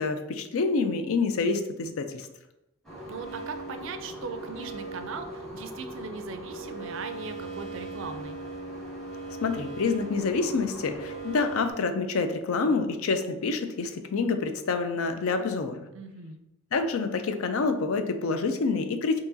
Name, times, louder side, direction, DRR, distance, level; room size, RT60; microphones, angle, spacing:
voice 1, 0.0-2.3 9.4-15.8 16.7-19.2, left 4 dB, 75° left, 8 dB, 0.4 m, -27 dB
sound 1, 2.8-11.7, right 2 dB, ahead, 1.1 m, -39 dB
voice 2, 3.1-8.4 15.9-16.4, right 4 dB, 60° right, 8 dB, 0.4 m, -39 dB
4.6 x 2.9 x 2.7 m, 0.92 s
head